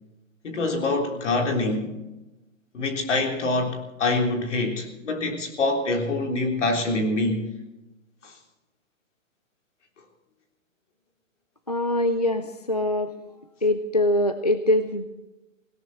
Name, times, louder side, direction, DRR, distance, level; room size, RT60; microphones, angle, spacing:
voice 1, 0.4-2.0 2.7-7.5 8.2-8.3, left 2 dB, 60° left, 3.7 m, -25 dB
voice 2, 11.7-13.1 13.6-15.1, left 1 dB, 30° left, 0.4 m, -23 dB
19.0 x 17.0 x 4.2 m
hypercardioid pair, 180°, 41 cm